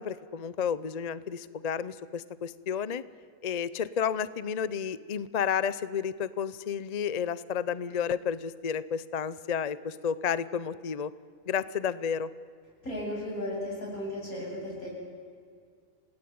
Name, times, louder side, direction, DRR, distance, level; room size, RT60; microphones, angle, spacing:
voice 1, 0.0-3.0 3.4-11.1 11.5-12.3, left 7 dB, 40° left, 17 dB, 0.6 m, -31 dB
voice 2, 12.8-14.9, left 1 dB, 85° left, -3 dB, 8.7 m, -35 dB
27.5 x 18.0 x 9.5 m, 2.1 s
omnidirectional pair, 1.5 m